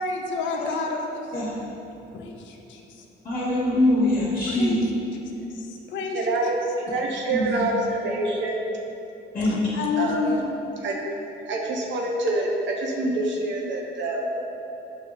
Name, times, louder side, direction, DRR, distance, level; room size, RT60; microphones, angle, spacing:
voice 1, 0.0-1.3 2.1-3.0 4.5-4.8 5.5-6.2 9.4-10.4, left 4 dB, 70° left, 2 dB, 0.5 m, -29 dB
voice 2, 3.2-4.7 7.3-7.6 9.3-9.6, left 1 dB, 40° left, -8 dB, 1.0 m, -23 dB
voice 3, 6.1-8.6 10.0-10.2 10.8-11.0 11.5-14.2, right 2 dB, 65° right, -1 dB, 0.6 m, -26 dB
5.2 x 2.0 x 3.5 m, 2.9 s
cardioid pair, 90°, 20 cm